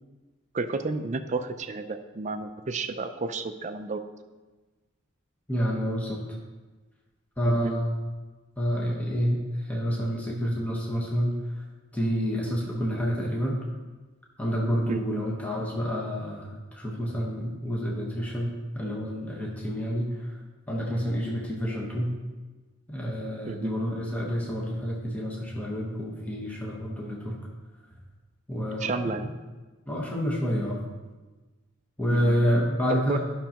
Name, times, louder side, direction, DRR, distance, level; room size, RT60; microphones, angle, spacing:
voice 1, 0.5-4.0 7.5-7.8 14.9-15.2 23.4-23.8 28.8-29.3 32.1-32.4 33.1-33.2, right 3 dB, 35° right, 9 dB, 0.4 m, -31 dB
voice 2, 5.5-6.2 7.4-8.0 8.6-11.4 11.9-13.6 14.4-20.3 20.7-22.1 22.9-27.4 28.5-29.3 29.9-30.8 32.0-33.2, equal, 5° left, -4 dB, 1.1 m, -28 dB
11.0 x 6.2 x 2.9 m, 1.3 s
head